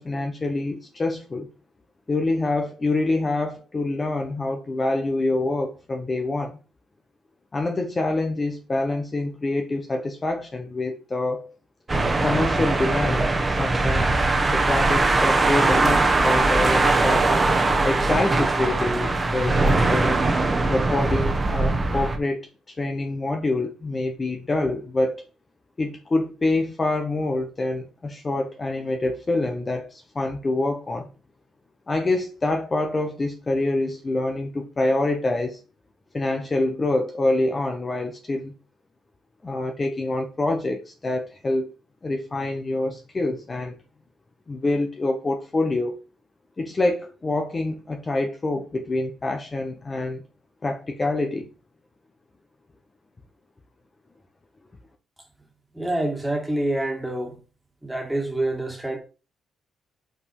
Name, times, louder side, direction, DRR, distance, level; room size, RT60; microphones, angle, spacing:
voice 1, 0.0-1.5 2.1-6.6 7.5-11.5 12.2-17.3 17.8-20.2 20.7-25.2 25.8-31.1 31.9-35.6 36.1-38.5 39.4-41.7 42.0-43.7 44.5-46.0 46.6-50.2 50.6-51.5, left 2 dB, 30° left, 1.1 m, -26 dB
sound 1, 11.9-22.2, right 3 dB, 25° right, 1.3 m, -21 dB
voice 2, 55.7-57.4 57.8-59.0, right 1 dB, 5° right, 2.1 m, -26 dB
5.7 x 5.4 x 4.8 m
cardioid pair, 90°, 0 cm